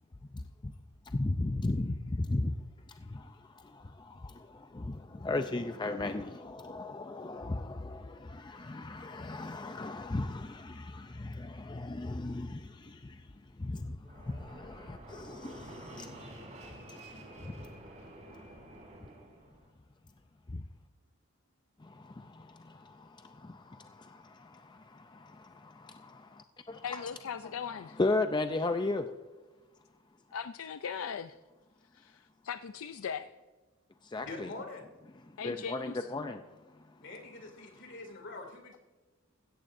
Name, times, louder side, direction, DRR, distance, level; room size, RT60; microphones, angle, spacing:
voice 1, 0.3-0.7 1.1-2.5 2.9-13.3 13.6-16.3 16.9-17.6 20.5-20.6 21.8-27.0 28.0-29.1 34.0-34.5 35.4-36.4, left 2 dB, 20° left, 0.5 m, -36 dB
Fixed-wing aircraft airplane, 14.0-19.7, right 1 dB, 35° right, 3.5 m, -49 dB
voice 2, 26.8-28.0 30.3-31.4 31.9-33.3 35.4-36.1, left 7 dB, 75° left, 0.4 m, -39 dB
voice 3, 34.2-34.9 37.0-38.8, left 3 dB, 60° left, 2.6 m, -44 dB
16.5 x 14.0 x 2.6 m
head